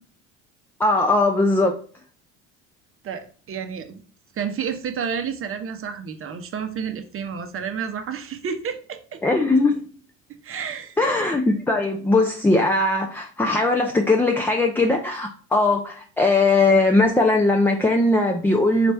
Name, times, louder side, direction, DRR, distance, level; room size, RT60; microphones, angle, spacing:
voice 1, 0.8-1.8 9.2-9.8 11.0-18.9, left 2 dB, 5° left, 2 dB, 0.5 m, -19 dB
voice 2, 3.0-4.0 4.3-9.2 10.4-11.0, right 7 dB, 35° right, 8 dB, 0.7 m, -30 dB
4.0 x 3.2 x 3.3 m, 0.43 s
hypercardioid pair, 75°, 38 cm